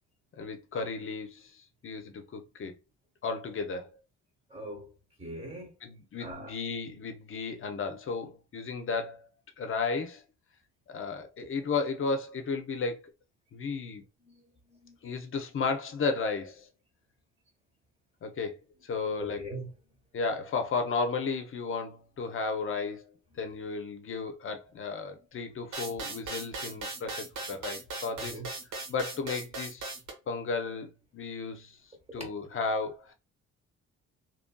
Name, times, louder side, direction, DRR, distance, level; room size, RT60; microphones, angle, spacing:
voice 1, 0.4-2.7 3.2-3.9 5.8-9.3 9.6-10.2 10.9-13.0 13.5-14.0 15.0-16.7 18.2-19.4 20.1-23.0 23.4-28.4 28.9-30.0 30.3-31.8 32.1-33.1, left 4 dB, 45° left, 0.7 m, -34 dB
voice 2, 4.5-4.9 5.2-5.8 6.2-6.6 14.2-15.0 19.2-19.7 23.3-23.4 28.2-28.5 32.1-32.3, right 1 dB, 20° right, 1.2 m, -42 dB
sound 1, 25.7-30.1, right 3 dB, 70° right, 1.1 m, -38 dB
2.9 x 2.6 x 2.2 m
cardioid pair, 90°, 30 cm